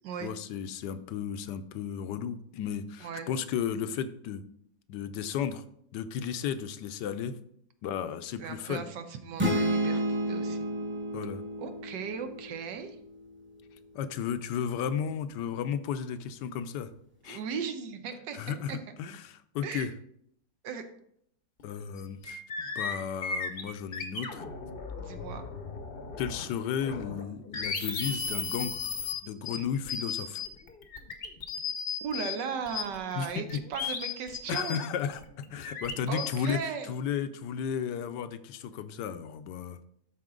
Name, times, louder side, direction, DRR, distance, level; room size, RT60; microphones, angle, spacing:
voice 1, 0.2-4.4 4.9-5.6 5.9-7.4 7.8-8.9 11.1-11.4 13.9-16.9 17.2-17.4 18.3-19.9 21.6-22.4 22.7-24.4 26.2-28.8 29.2-30.4 33.1-33.9 34.5-39.8, left 8 dB, 75° left, 11 dB, 1.2 m, -34 dB
voice 2, 8.4-10.7 11.6-13.0 17.3-18.8 19.6-19.9 20.6-20.9 25.0-25.4 32.0-34.8 36.1-36.9, right 6 dB, 75° right, 8 dB, 1.5 m, -37 dB
sound 1, 9.4-13.1, right 1 dB, 10° right, 0.6 m, -31 dB
sound 2, 21.6-21.7 22.0-26.5 26.8-32.3 32.7-36.3, left 5 dB, 45° left, 0.8 m, -36 dB
12.5 x 4.3 x 3.7 m, 0.70 s
omnidirectional pair, 1.9 m